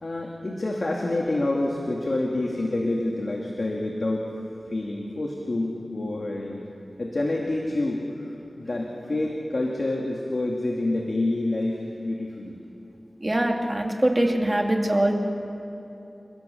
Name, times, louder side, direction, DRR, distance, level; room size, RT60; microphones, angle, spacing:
voice 1, 0.0-4.3 4.7-6.6 7.0-8.3 8.6-12.6, left 2 dB, 55° left, -1 dB, 2.3 m, -27 dB
voice 2, 13.2-15.1, right 1 dB, 25° right, 2 dB, 2.6 m, -23 dB
29.5 x 17.0 x 7.2 m, 2.8 s
wide cardioid pair, 80°, 0 cm